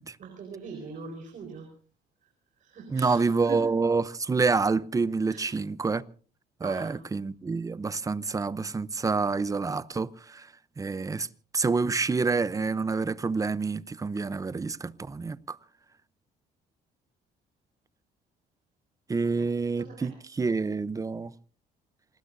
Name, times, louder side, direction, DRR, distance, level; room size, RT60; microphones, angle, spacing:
voice 1, 0.2-1.7 2.6-3.7 5.3-5.5 6.6-7.0 19.4-19.5 19.8-20.1, right 5 dB, 50° right, 4.6 m, -42 dB
voice 2, 2.9-6.1 6.6-10.5 10.8-11.3 11.5-15.6 19.1-21.3, right 4 dB, 20° right, 0.7 m, -28 dB
28.0 x 19.5 x 2.7 m
cardioid pair, 110°, 17 cm